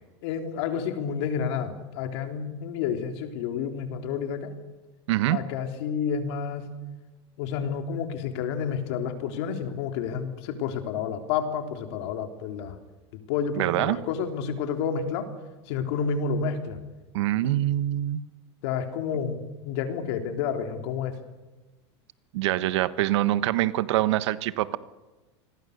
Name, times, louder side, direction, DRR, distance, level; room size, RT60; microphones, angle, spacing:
voice 1, 0.2-4.5 5.3-6.7 7.4-12.8 13.3-15.3 15.7-16.8 18.6-21.2, left 6 dB, 65° left, 6 dB, 3.7 m, -30 dB
voice 2, 5.1-5.4 13.6-14.0 17.1-18.2 22.3-24.8, right 15 dB, 75° right, 14 dB, 1.3 m, -24 dB
27.5 x 21.0 x 6.8 m, 1.2 s
supercardioid pair, 125°, 15 cm